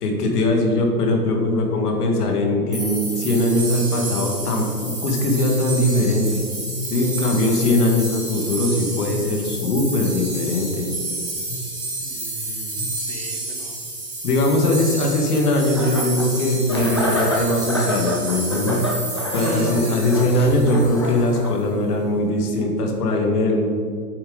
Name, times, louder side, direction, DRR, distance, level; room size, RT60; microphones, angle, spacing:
voice 1, 0.0-6.4 6.9-10.9 11.5-11.6 14.2-18.9 19.3-23.7, left 1 dB, 65° left, 2 dB, 1.9 m, -20 dB
sound 1, 2.7-21.4, right 2 dB, 10° right, 2.1 m, -30 dB
voice 2, 12.0-13.8 19.4-20.0, right 4 dB, 40° right, 6 dB, 1.0 m, -33 dB
sound 2, 15.8-16.3 16.7-21.5, left 1 dB, 20° left, 0.3 m, -28 dB
8.8 x 7.2 x 3.9 m, 2.3 s
hypercardioid pair, 155°, 48 cm